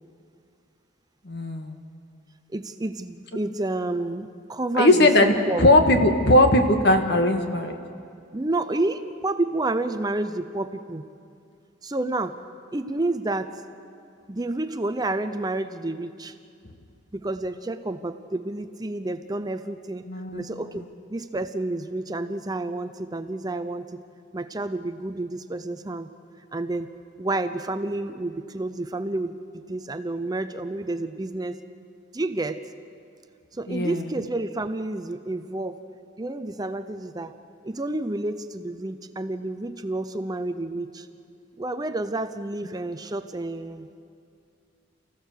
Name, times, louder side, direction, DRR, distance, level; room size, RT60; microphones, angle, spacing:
voice 1, 1.2-1.8 4.8-7.8 20.1-20.4 33.7-34.0, left 1 dB, 60° left, 6 dB, 1.6 m, -19 dB
voice 2, 2.5-5.7 8.3-11.0 11.8-12.4 12.7-13.6 14.3-16.4 17.1-24.0 24.3-26.1 26.5-26.9 27.2-31.6 32.1-32.6 33.5-35.8 36.2-37.3 37.6-41.1 41.6-43.9, right 2 dB, 20° right, 10 dB, 0.6 m, -30 dB
29.0 x 15.5 x 6.6 m, 2.5 s
head